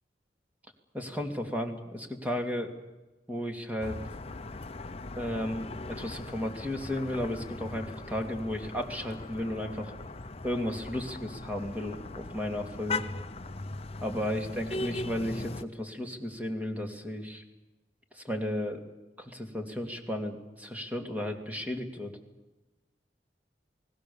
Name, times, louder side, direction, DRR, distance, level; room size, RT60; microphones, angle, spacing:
voice 1, 0.9-2.7 3.3-4.0 5.2-9.9 10.4-13.0 14.0-17.4 18.1-18.8 19.2-22.1, left 1 dB, 10° right, 3 dB, 2.7 m, -34 dB
sound 1, 3.8-15.6, left 3 dB, 35° left, 0.8 m, -39 dB
29.0 x 20.0 x 7.1 m, 1.1 s
head